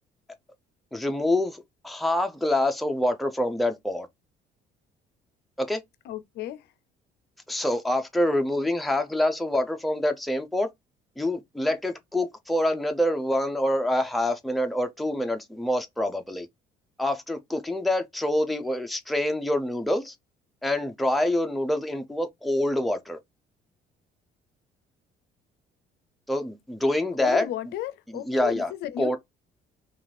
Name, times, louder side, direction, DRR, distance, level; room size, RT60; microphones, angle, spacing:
voice 1, 0.9-4.1 5.6-5.8 7.5-10.7 11.2-16.5 17.0-20.1 20.6-23.2 26.3-27.5 28.1-28.7 29.0-29.2, left 1 dB, ahead, 0.4 m, -26 dB
voice 2, 6.1-6.6 27.2-29.2, left 12 dB, 75° left, 0.4 m, -33 dB
2.5 x 2.4 x 3.1 m
cardioid pair, 110°, 17 cm